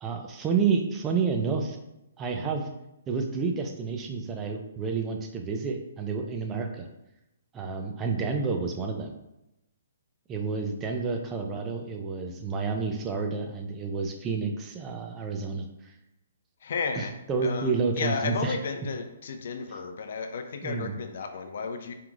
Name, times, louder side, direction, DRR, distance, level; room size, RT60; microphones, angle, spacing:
voice 1, 0.0-1.8 2.2-2.7 3.1-6.9 7.5-9.1 10.3-15.7 17.0-17.1 17.3-18.6 20.6-21.0, right 5 dB, 20° right, 3 dB, 0.4 m, -29 dB
voice 2, 16.6-17.1 17.4-21.9, left 5 dB, 60° left, 7 dB, 0.5 m, -33 dB
4.5 x 3.7 x 2.4 m, 0.88 s
hypercardioid pair, 150°, 0 cm